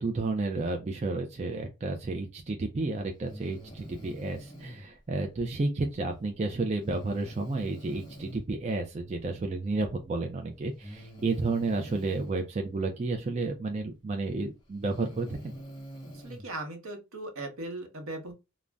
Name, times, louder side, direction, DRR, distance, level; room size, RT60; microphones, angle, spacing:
voice 1, 0.0-15.5, right 3 dB, 30° right, 0.4 m, -31 dB
Breathing, 3.2-4.8 6.8-8.4 9.8-9.9 10.8-12.3 13.9-14.0 14.7-16.4, equal, 20° left, 1.0 m, -44 dB
voice 2, 16.1-18.3, right 2 dB, 80° right, 0.9 m, -38 dB
2.5 x 2.1 x 3.3 m
head